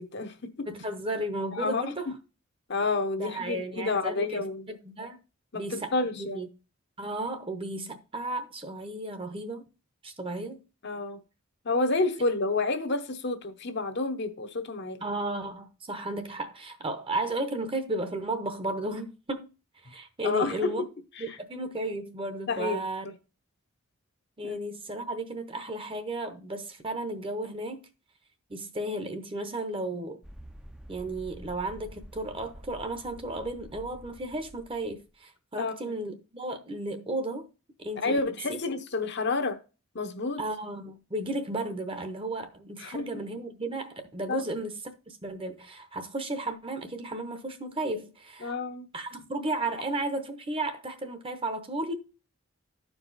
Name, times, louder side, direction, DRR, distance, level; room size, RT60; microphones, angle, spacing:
voice 1, 0.0-0.7 1.5-2.1 2.7-4.7 5.5-6.4 10.8-11.2 11.6-15.0 20.2-20.8 21.2-21.4 22.5-23.1 24.4-24.6 35.6-35.7 38.0-39.6 39.9-40.4 42.8-43.2 44.3-44.4 48.4-48.9, left 3 dB, 50° left, 0.8 m, -30 dB
voice 2, 0.7-2.1 3.2-5.2 5.5-6.5 7.0-9.7 10.0-10.6 15.0-19.5 19.8-20.8 21.2-23.1 24.4-27.8 28.5-30.2 30.9-37.5 37.8-38.2 38.5-38.6 40.4-44.8 45.1-48.5 48.9-51.9, right 1 dB, 25° right, 0.8 m, -34 dB
sound 1, 30.2-35.0, equal, 5° right, 0.5 m, -48 dB
12.5 x 4.7 x 4.0 m
head